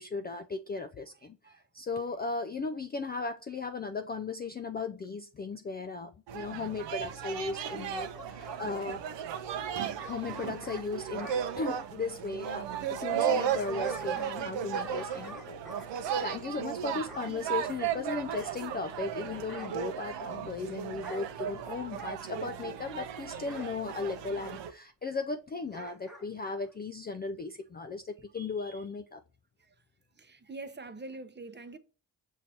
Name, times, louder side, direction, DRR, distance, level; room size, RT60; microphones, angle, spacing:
voice 1, 0.0-9.0 10.0-12.7 13.0-29.2, left 4 dB, 25° left, 0.3 m, -37 dB
sound 1, 6.3-24.7, right 8 dB, 70° right, 0.6 m, -35 dB
Bark / Growling, 7.3-8.9 10.0-11.4 13.1-14.4 14.7-16.3 17.1-17.4 18.3-19.1 19.5-19.8 20.9-21.3 22.0-22.2 23.5-23.7 24.4-24.6 25.7-26.3 26.6-26.7, equal, ahead, 1.2 m, -48 dB
voice 2, 9.8-10.1 29.6-29.7 30.2-31.8, right 3 dB, 25° right, 0.7 m, -45 dB
6.2 x 2.8 x 2.7 m
hypercardioid pair, 40°, 46 cm